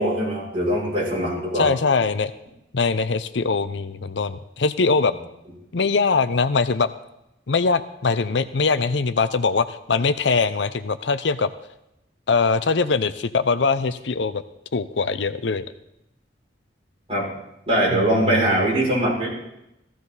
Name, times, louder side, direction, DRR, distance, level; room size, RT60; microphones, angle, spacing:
voice 1, 0.0-1.7 17.1-17.3 17.7-19.3, right 1 dB, 30° right, -5 dB, 6.4 m, -21 dB
voice 2, 1.5-2.3 2.7-5.1 5.7-6.9 7.5-11.5 12.3-14.4 14.7-15.6 17.9-18.0, left 4 dB, 70° left, 12 dB, 0.7 m, -22 dB
15.0 x 15.0 x 4.1 m, 0.86 s
head